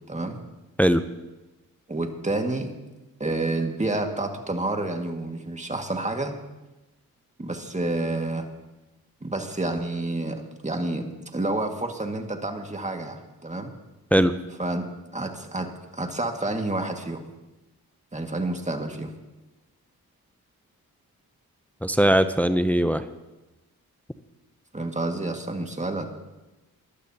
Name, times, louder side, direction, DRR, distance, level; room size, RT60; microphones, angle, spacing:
voice 1, 0.1-0.4 1.9-2.7 3.2-6.4 7.4-8.5 9.2-13.7 14.6-14.9 15.1-17.2 18.1-19.1 24.7-26.1, right 2 dB, 20° right, 4 dB, 2.0 m, -29 dB
voice 2, 21.8-23.0, equal, 5° left, 11 dB, 0.6 m, -20 dB
20.5 x 12.0 x 2.9 m, 1.1 s
cardioid pair, 50°, 38 cm